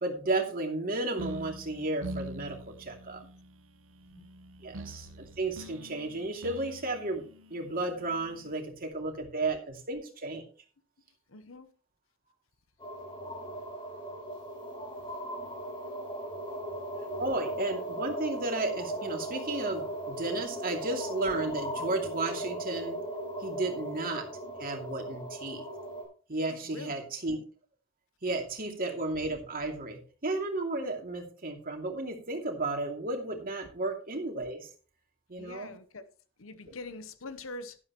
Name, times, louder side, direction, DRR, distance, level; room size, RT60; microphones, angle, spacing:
voice 1, 0.0-3.2 4.6-7.2 7.5-10.4 17.2-23.0 23.4-24.3 24.6-25.6 26.3-27.4 28.2-34.7 35.3-35.7, right 2 dB, 45° right, 2.6 m, -33 dB
sound 1, 1.2-8.7, equal, 70° right, 0.9 m, -45 dB
voice 2, 11.3-11.7 26.5-27.0 35.4-36.1 36.4-37.8, left 2 dB, 80° left, 0.9 m, -44 dB
sound 2, 12.8-26.0, right 1 dB, 25° left, 5.1 m, -38 dB
11.5 x 11.0 x 3.0 m
head